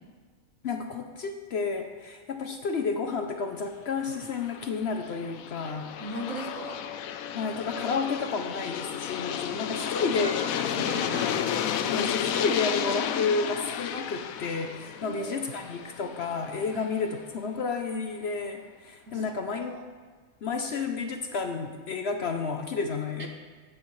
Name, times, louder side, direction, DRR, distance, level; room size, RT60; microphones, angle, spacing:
voice 1, 0.6-5.9 7.3-10.4 11.8-19.7 20.4-23.3, left 4 dB, 60° left, 5 dB, 0.9 m, -31 dB
Aircraft, 4.2-17.0, left 9 dB, 85° left, 1.0 m, -32 dB
voice 2, 6.0-6.8 9.5-11.5 15.0-15.5 16.0-16.2 16.7-16.9 19.1-19.8 23.2-23.3, right 2 dB, 70° right, 2 dB, 1.7 m, -39 dB
15.5 x 8.5 x 3.2 m, 1.5 s
omnidirectional pair, 1.4 m